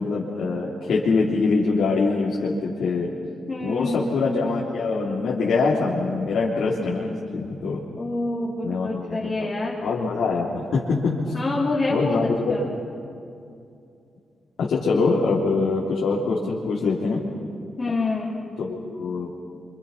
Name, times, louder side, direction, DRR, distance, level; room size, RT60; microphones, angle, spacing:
voice 1, 0.0-3.1 3.6-7.8 8.6-9.5 9.8-11.2 11.9-12.7 14.6-17.2 18.6-19.3, left 4 dB, 70° left, -5 dB, 3.5 m, -24 dB
voice 2, 3.5-4.0 8.0-9.7 11.3-12.6 17.8-18.4, left 2 dB, 25° left, -7 dB, 3.3 m, -26 dB
28.5 x 26.5 x 5.8 m, 2.5 s
wide cardioid pair, 180°, 0 cm